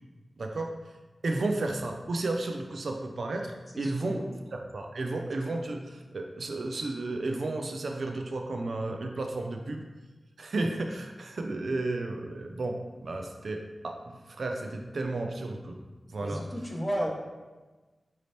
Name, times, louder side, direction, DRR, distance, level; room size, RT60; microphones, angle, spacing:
voice 1, 0.4-0.7 1.2-4.2 4.5-9.8 10.4-15.8 16.1-16.5, right 2 dB, 70° right, 3 dB, 0.4 m, -33 dB
voice 2, 3.7-4.2 16.2-17.1, equal, 15° left, 0 dB, 0.7 m, -33 dB
5.0 x 2.7 x 3.2 m, 1.2 s
wide cardioid pair, 105°, 0 cm